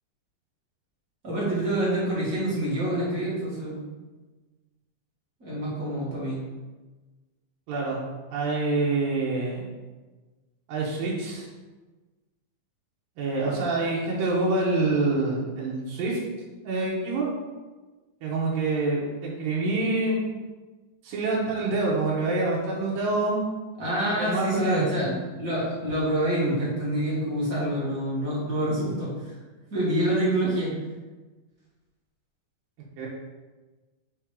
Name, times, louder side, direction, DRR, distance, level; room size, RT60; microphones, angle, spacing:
voice 1, 1.2-3.8 5.4-6.4 23.8-29.3 29.7-30.7, right 1 dB, 25° right, -9 dB, 2.3 m, -27 dB
voice 2, 7.7-8.0 8.3-9.6 10.7-11.5 13.2-16.2 16.6-17.3 18.2-20.2 21.0-23.4 24.2-24.9 33.0-33.1, right 2 dB, 90° right, -5 dB, 3.0 m, -26 dB
6.5 x 3.7 x 5.1 m, 1.3 s
omnidirectional pair, 4.0 m